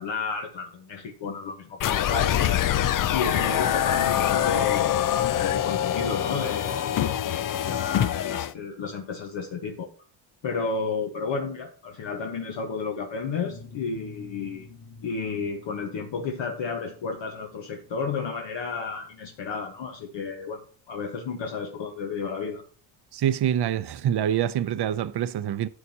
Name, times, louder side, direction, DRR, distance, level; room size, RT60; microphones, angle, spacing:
voice 1, 0.0-2.6 3.1-5.1 5.4-9.9 10.4-14.7 15.0-20.6 20.9-22.6, left 5 dB, 65° left, 1.2 m, -32 dB
sound 1, 1.8-8.5, left 11 dB, 45° left, 0.4 m, -24 dB
sound 2, 13.5-22.9, left 4 dB, 85° left, 2.0 m, -50 dB
voice 2, 23.1-25.7, right 10 dB, 55° right, 0.6 m, -25 dB
11.0 x 8.0 x 2.8 m
cardioid pair, 110°, 49 cm